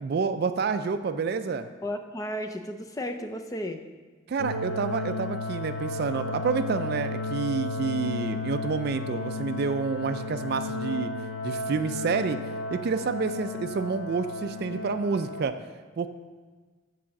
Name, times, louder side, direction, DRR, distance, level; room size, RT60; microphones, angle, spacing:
voice 1, 0.0-1.7 4.3-11.1 11.4-12.4 12.7-15.5 16.0-16.1, right 5 dB, 50° right, 10 dB, 0.3 m, -28 dB
voice 2, 1.8-3.9, equal, 15° left, 5 dB, 0.5 m, -34 dB
sound 1, 4.4-15.4, left 2 dB, 80° left, 1.0 m, -33 dB
7.6 x 4.8 x 6.9 m, 1.4 s
head